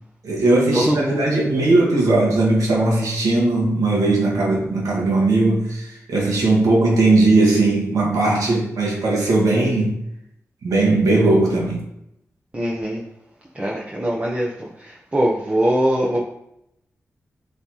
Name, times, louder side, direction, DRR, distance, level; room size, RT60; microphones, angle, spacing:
voice 1, 0.2-10.0 10.6-11.9, right 2 dB, 90° right, -2 dB, 1.8 m, -18 dB
voice 2, 12.5-13.0 13.6-14.5 15.1-16.2, right 1 dB, 25° right, -3 dB, 1.1 m, -21 dB
7.6 x 4.1 x 3.1 m, 0.82 s
cardioid pair, 65°, 6 cm